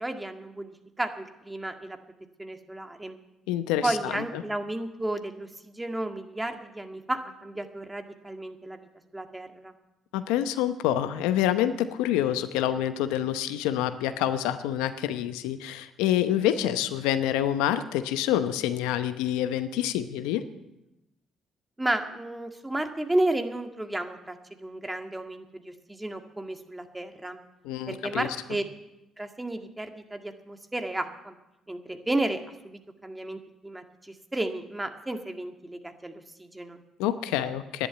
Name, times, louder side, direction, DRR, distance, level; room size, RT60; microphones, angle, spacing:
voice 1, 0.0-2.0 2.4-3.2 3.8-8.9 9.1-9.7 21.8-27.4 27.9-28.6 29.2-31.3 31.7-36.8, right 1 dB, 15° right, 6 dB, 2.0 m, -33 dB
voice 2, 3.5-4.2 10.1-20.4 27.6-28.3 37.0-37.9, left 11 dB, 80° left, 11 dB, 0.8 m, -27 dB
11.0 x 11.0 x 9.0 m, 0.94 s
hypercardioid pair, 50°, 0 cm